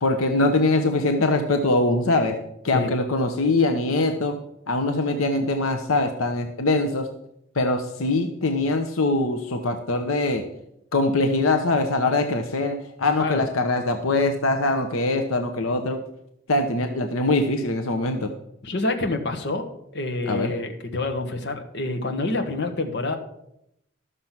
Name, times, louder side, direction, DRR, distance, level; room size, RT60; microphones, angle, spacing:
voice 1, 0.0-2.4 2.6-4.3 4.7-7.1 7.5-10.4 10.9-16.0 16.5-18.3 20.2-20.5, left 2 dB, 80° left, 6 dB, 1.0 m, -22 dB
voice 2, 18.6-19.7 19.9-23.2, left 2 dB, 55° left, 5 dB, 1.5 m, -27 dB
12.5 x 6.7 x 5.9 m, 0.79 s
head